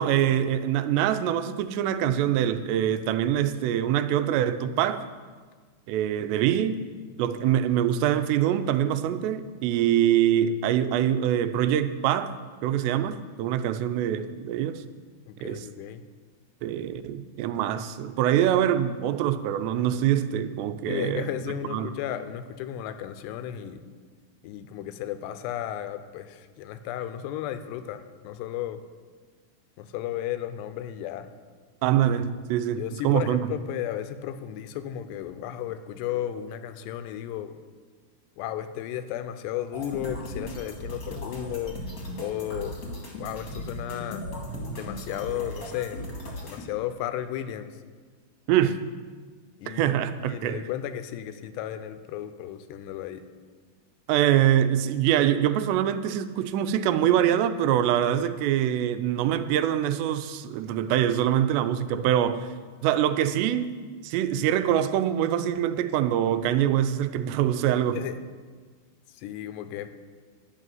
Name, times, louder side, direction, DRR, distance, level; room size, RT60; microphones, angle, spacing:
voice 1, 0.0-5.0 5.9-6.8 7.2-12.3 12.6-14.8 15.4-15.7 16.6-21.3 21.7-21.9 31.8-33.4 48.5-48.8 49.7-50.6 54.1-62.5 62.8-63.8 64.0-68.0, right 10 dB, 90° right, 11 dB, 2.8 m, -24 dB
voice 2, 7.2-7.6 15.3-16.0 20.9-23.8 24.4-28.8 29.8-31.3 32.8-37.6 38.4-41.8 42.2-42.8 43.2-44.2 44.8-46.0 46.4-47.8 49.6-53.2 67.9-68.2 69.1-69.9, left 11 dB, 85° left, 10 dB, 2.8 m, -34 dB
sound 1, 39.7-46.6, equal, 40° left, 1.3 m, -37 dB
11.5 x 6.6 x 9.2 m, 1.5 s
omnidirectional pair, 4.8 m